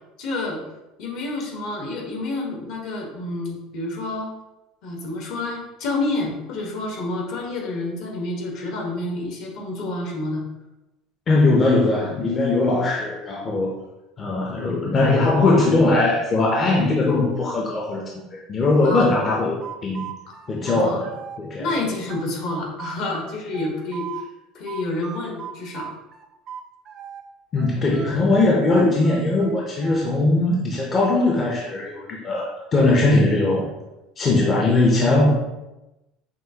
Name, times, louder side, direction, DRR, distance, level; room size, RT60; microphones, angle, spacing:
voice 1, 0.2-0.6 1.0-4.3 4.8-10.4 18.8-19.1 20.7-21.0 21.6-24.3 24.5-25.9 27.9-28.2, left 2 dB, 60° left, 0 dB, 1.2 m, -28 dB
voice 2, 11.3-13.8 14.2-18.0 18.3-20.1 20.5-21.1 21.4-21.7 27.5-33.7 34.2-35.3, left 2 dB, 30° left, -3 dB, 0.6 m, -20 dB
sound 1, 18.9-21.4 21.7-24.3 24.7-27.2 27.6-30.2, right 8 dB, 35° right, 0.4 m, -37 dB
5.9 x 2.4 x 2.8 m, 0.99 s
cardioid pair, 140°, 0 cm